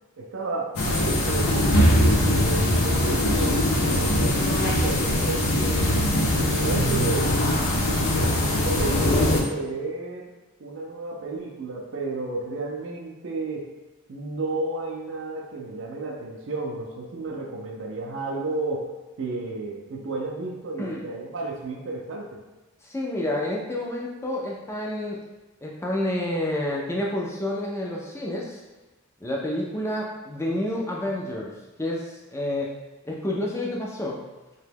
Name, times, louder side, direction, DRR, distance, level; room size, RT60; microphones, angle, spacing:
voice 1, 0.2-6.0 6.6-7.4 8.6-10.3 10.6-13.7 14.1-18.9 19.2-22.4, right 3 dB, 60° right, -2 dB, 0.4 m, -32 dB
sound 1, 0.8-9.4, left 1 dB, 90° left, 0.5 m, -21 dB
voice 2, 22.8-25.2 25.6-28.6 29.2-31.5 31.8-32.7 33.1-34.2, left 1 dB, 15° left, -2 dB, 0.3 m, -29 dB
2.9 x 2.2 x 3.3 m, 1.1 s
head